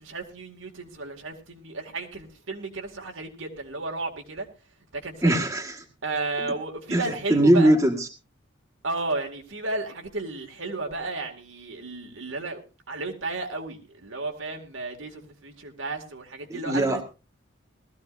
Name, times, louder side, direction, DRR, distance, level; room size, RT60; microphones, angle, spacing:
voice 1, 0.0-4.5 4.9-5.4 6.0-7.7 8.8-12.6 12.9-17.0, right 2 dB, 80° right, 2 dB, 2.4 m, -33 dB
voice 2, 5.2-5.8 6.9-8.1 16.5-17.0, right 1 dB, 15° right, 1 dB, 1.6 m, -21 dB
19.5 x 14.5 x 2.6 m, 0.30 s
head